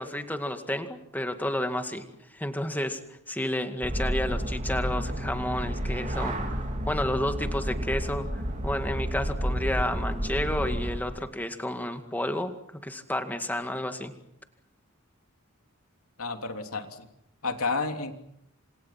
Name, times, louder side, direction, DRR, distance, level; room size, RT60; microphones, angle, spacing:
voice 1, 0.0-2.0 2.3-3.0 3.3-6.4 6.9-14.1, left 1 dB, 10° left, 7 dB, 2.1 m, -31 dB
sound 1, 3.8-11.0, equal, 35° right, 4.0 m, -30 dB
voice 2, 16.2-17.1 17.4-18.1, left 4 dB, 80° left, 5 dB, 3.2 m, -31 dB
28.5 x 27.5 x 5.9 m, 0.75 s
head